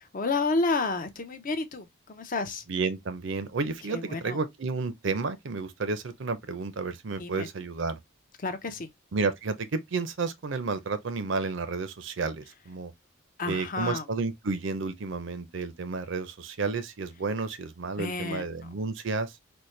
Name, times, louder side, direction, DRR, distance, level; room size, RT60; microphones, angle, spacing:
voice 1, 0.1-2.6 3.9-4.4 7.2-7.5 8.4-8.9 13.4-14.1 18.0-18.7, left 3 dB, 40° left, 0.6 m, -30 dB
voice 2, 2.7-8.0 9.1-12.9 13.5-19.3, right 4 dB, 60° right, 0.5 m, -31 dB
4.2 x 2.1 x 3.1 m
head